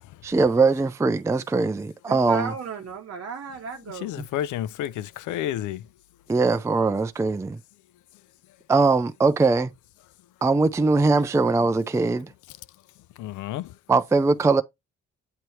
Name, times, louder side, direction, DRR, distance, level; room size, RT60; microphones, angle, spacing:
voice 1, 0.2-2.5 6.3-7.6 8.7-9.7 10.4-12.3 13.9-14.6, right 3 dB, 10° right, 0.4 m, -21 dB
voice 2, 2.1-4.1, right 5 dB, 50° right, 0.8 m, -34 dB
voice 3, 4.0-5.8 13.2-13.6, left 12 dB, 80° left, 0.5 m, -30 dB
8.1 x 3.0 x 4.3 m
cardioid pair, 70°, 30 cm